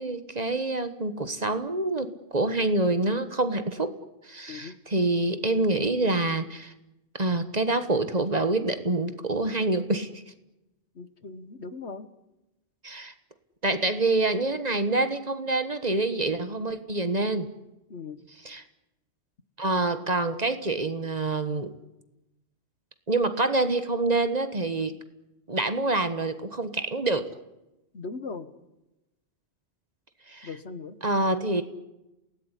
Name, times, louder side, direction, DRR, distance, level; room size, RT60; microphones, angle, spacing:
voice 1, 0.0-3.9 4.2-6.7 7.1-10.1 12.8-13.1 13.6-17.5 18.4-18.6 19.6-21.7 23.1-24.9 25.5-27.3 30.3-30.5 31.0-31.6, right 2 dB, 35° right, 10 dB, 1.5 m, -26 dB
voice 2, 10.9-12.1 17.9-18.2 27.9-28.5 30.4-31.0, left 4 dB, 70° left, 12 dB, 1.6 m, -39 dB
28.0 x 18.5 x 10.0 m, 0.97 s
omnidirectional pair, 1.2 m